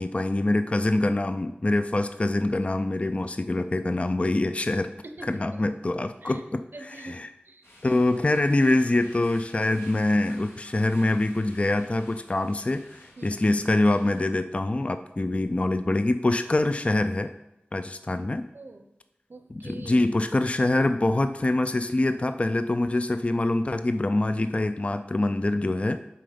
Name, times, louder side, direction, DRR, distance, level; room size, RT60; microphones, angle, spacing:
voice 1, 0.0-4.9 5.3-6.6 7.0-7.3 7.8-17.3 17.7-18.5 19.5-26.0, left 2 dB, 35° left, 9 dB, 0.3 m, -25 dB
voice 2, 5.0-5.6 6.2-6.4 6.7-8.0 8.3-8.4 13.2-13.4 15.2-15.3 18.5-18.9 19.3-20.0, right 2 dB, 65° right, 8 dB, 0.7 m, -45 dB
sound 1, 7.6-14.2, left 1 dB, 80° left, 1.9 m, -52 dB
7.6 x 3.9 x 5.0 m, 0.89 s
wide cardioid pair, 60°, 4 cm